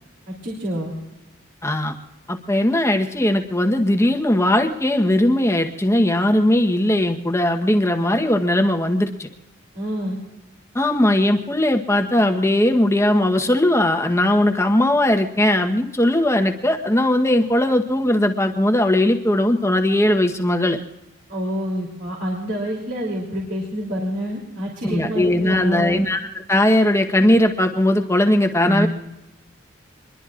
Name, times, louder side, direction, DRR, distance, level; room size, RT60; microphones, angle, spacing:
voice 1, 0.3-0.9 9.7-10.2 21.3-26.0 28.6-28.9, equal, 60° right, -4 dB, 3.2 m, -27 dB
voice 2, 1.6-1.9 2.3-9.3 10.7-20.8 24.8-26.2 26.5-28.9, left 1 dB, 15° left, 4 dB, 1.0 m, -19 dB
26.0 x 21.5 x 2.5 m, 0.95 s
head